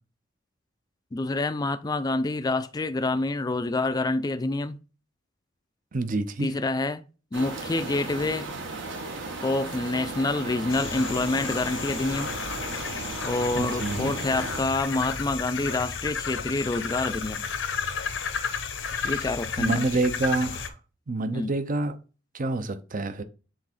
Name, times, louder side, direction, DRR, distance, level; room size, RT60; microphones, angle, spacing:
voice 1, 1.1-4.8 6.4-7.0 7.3-8.5 9.4-12.3 13.2-17.4 19.0-19.8 21.3-21.5, left 2 dB, 20° left, 0.4 m, -27 dB
voice 2, 5.9-6.5 13.5-14.1 19.0-19.2 19.6-20.8 21.1-22.0 22.3-23.2, right 2 dB, 45° right, 0.7 m, -28 dB
sound 1, 7.3-14.6, right 3 dB, 70° right, 1.5 m, -35 dB
sound 2, 10.7-20.7, left 6 dB, 85° left, 0.9 m, -32 dB
7.4 x 3.5 x 4.3 m
head